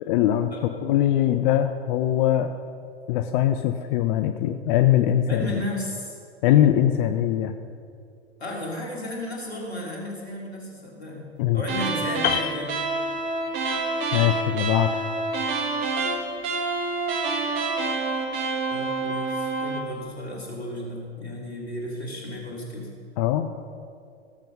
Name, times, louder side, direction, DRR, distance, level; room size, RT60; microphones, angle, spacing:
voice 1, 0.1-0.5 0.8-2.5 3.1-5.6 6.4-7.5 11.4-11.6 14.1-15.1 23.2-23.5, left 12 dB, 55° left, 8 dB, 0.7 m, -21 dB
voice 2, 5.3-6.2 8.4-12.8 18.7-22.9, left 1 dB, 90° left, -3 dB, 3.5 m, -34 dB
sound 1, 11.6-19.9, right 3 dB, 50° right, 1.8 m, -27 dB
Piano, 12.2-13.7 14.0-14.2, left 16 dB, 30° left, 0.4 m, -30 dB
18.0 x 7.4 x 5.5 m, 2.3 s
hypercardioid pair, 95°, 31 cm